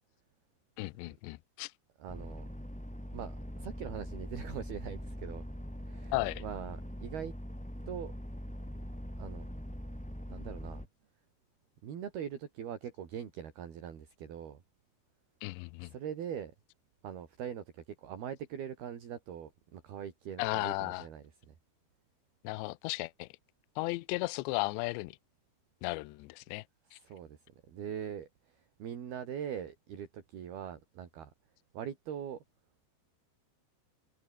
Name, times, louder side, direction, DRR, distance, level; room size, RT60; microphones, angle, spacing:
voice 1, 0.8-1.7 6.1-6.4 15.4-15.9 20.4-21.0 22.4-23.3 23.8-25.2 25.8-26.6 26.9-27.0, left 22 dB, 80° left, 2.8 m, -35 dB
voice 2, 2.0-2.5 3.1-5.4 5.9-7.3 7.9-8.1 9.2-9.4 10.3-10.9 11.8-14.6 15.8-16.5 17.0-21.5 26.9-27.4 27.7-31.3 31.7-32.4, right 9 dB, 60° right, 4.7 m, -42 dB
sound 1, 2.1-10.9, equal, ahead, 3.3 m, -42 dB
omnidirectional pair, 5.3 m